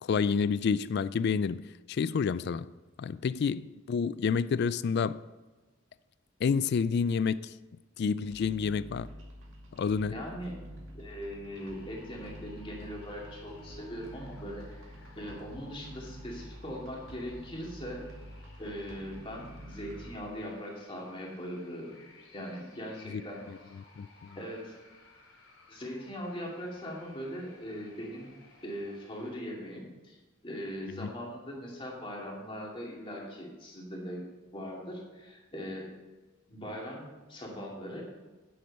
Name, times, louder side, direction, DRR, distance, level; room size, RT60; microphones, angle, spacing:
voice 1, 0.0-2.7 3.0-5.2 6.4-7.5 8.0-9.1 9.7-10.1 23.1-23.2 23.5-23.6 24.0-24.4 31.0-31.1, left 6 dB, 55° left, 0.3 m, -29 dB
sound 1, 8.3-20.1, equal, 65° right, 2.3 m, -48 dB
voice 2, 10.1-10.5 10.9-14.6 15.2-18.0 18.6-21.9 22.3-23.4 24.4-24.7 25.7-28.3 28.6-30.2 30.4-34.2 34.5-35.9 36.5-38.0, equal, 25° left, 2.5 m, -40 dB
sound 2, 11.5-29.3, left 3 dB, 70° left, 3.0 m, -58 dB
9.4 x 8.0 x 5.4 m
head